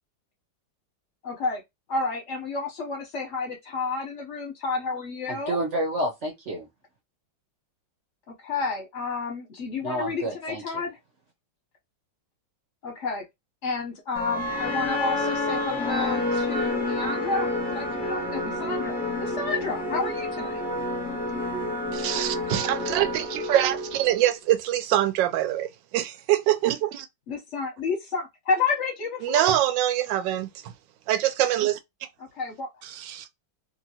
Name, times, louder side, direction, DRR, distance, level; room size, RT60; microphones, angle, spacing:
voice 1, 1.2-1.6 1.9-5.6 8.3-11.0 12.8-13.2 13.6-20.6 27.3-29.5 32.3-32.7, left 4 dB, 50° left, 0.9 m, -30 dB
voice 2, 5.3-6.7 9.8-10.6, right 1 dB, 55° right, 0.9 m, -29 dB
sound 1, 14.1-24.3, left 1 dB, 5° left, 0.8 m, -29 dB
voice 3, 21.9-27.1 29.2-30.7 31.1-31.8 32.8-33.2, right 12 dB, 80° right, 1.2 m, -24 dB
2.8 x 2.8 x 2.7 m
omnidirectional pair, 2.0 m